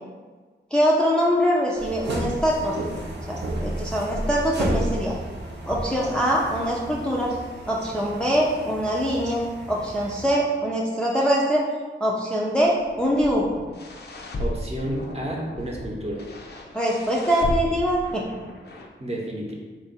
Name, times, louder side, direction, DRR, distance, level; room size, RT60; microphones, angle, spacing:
voice 1, 0.7-2.8 3.3-5.1 5.7-7.3 7.7-9.4 9.7-11.6 12.0-13.5 16.7-18.2, equal, 5° left, -4 dB, 0.5 m, -23 dB
sound 1, 1.8-10.3, right 1 dB, 60° right, 0.8 m, -32 dB
sound 2, 12.6-18.9, left 1 dB, 55° left, 0.5 m, -35 dB
voice 2, 14.4-16.3 19.0-19.5, right 1 dB, 30° right, -2 dB, 0.8 m, -31 dB
3.5 x 2.5 x 4.0 m, 1.4 s
wide cardioid pair, 75°, 20 cm